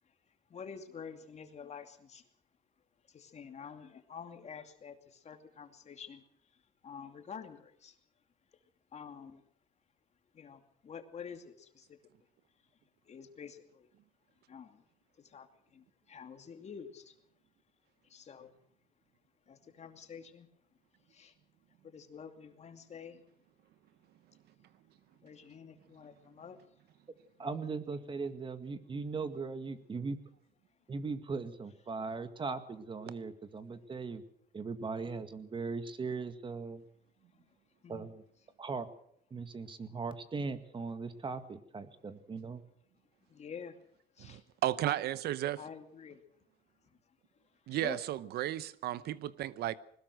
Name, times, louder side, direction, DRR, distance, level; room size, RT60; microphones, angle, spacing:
voice 1, 0.5-2.3 3.1-6.2 6.5-8.0 8.9-9.4 10.3-12.0 13.0-13.9 14.5-14.8 15.2-17.1 18.0-18.5 19.5-20.5 21.1-21.3 21.8-23.2 25.2-26.6 27.4-27.6 27.9-28.0 37.3-37.5 37.8-38.1 43.3-43.8 44.2-44.4 45.6-46.2 47.6-48.0, left 6 dB, 40° left, 2.6 m, -48 dB
voice 2, 27.4-30.2 30.9-34.2 34.5-36.8 37.9-38.2 38.6-38.9 39.3-42.6, right 4 dB, 30° right, 2.0 m, -39 dB
voice 3, 44.2-45.6 47.7-49.7, right 13 dB, 70° right, 0.9 m, -34 dB
21.0 x 20.0 x 6.4 m
cardioid pair, 110°, 17 cm